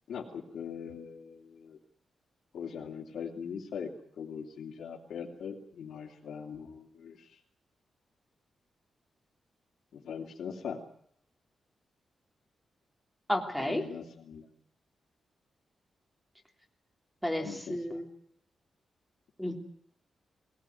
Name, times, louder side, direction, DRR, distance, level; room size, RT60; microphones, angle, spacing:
voice 1, 0.1-1.8 2.5-3.9 4.2-7.4 9.9-10.8 13.6-14.5 17.4-18.0, left 7 dB, 80° left, -3 dB, 3.0 m, -41 dB
voice 2, 13.3-13.8 17.2-18.0 19.4-19.6, left 1 dB, ahead, 4 dB, 3.0 m, -32 dB
22.0 x 18.0 x 9.4 m, 0.66 s
wide cardioid pair, 165°, 0 cm